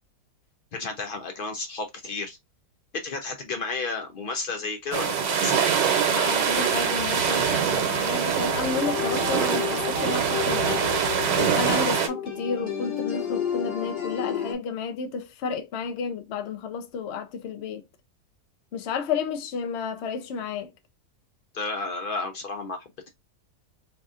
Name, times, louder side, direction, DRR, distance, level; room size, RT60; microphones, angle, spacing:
voice 1, 0.7-2.4 2.9-5.5 21.5-23.1, left 3 dB, 85° left, 0.4 m, -32 dB
sound 1, 4.9-12.1, right 7 dB, 75° right, 1.4 m, -24 dB
voice 2, 6.1-10.9 11.4-17.9 18.7-20.7, left 5 dB, 55° left, 0.7 m, -31 dB
sound 2, 8.7-14.5, left 8 dB, 35° left, 1.5 m, -31 dB
4.8 x 2.6 x 2.4 m
omnidirectional pair, 1.9 m